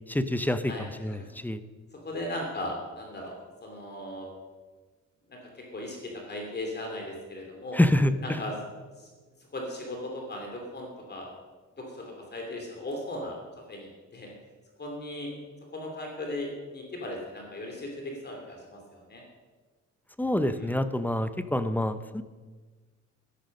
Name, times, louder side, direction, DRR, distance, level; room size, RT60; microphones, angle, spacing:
voice 1, 0.1-1.6 7.7-8.4 20.2-22.2, left 1 dB, 5° left, 11 dB, 0.6 m, -27 dB
voice 2, 2.0-4.3 5.3-7.8 8.2-8.5 9.0-9.1 9.5-11.3 11.8-12.0 12.3-13.4 13.7-14.3 14.8-15.3 15.7-19.2 20.5-20.7, left 1 dB, 35° left, 0 dB, 2.9 m, -37 dB
13.0 x 11.0 x 6.4 m, 1.4 s
cardioid pair, 130°, 30 cm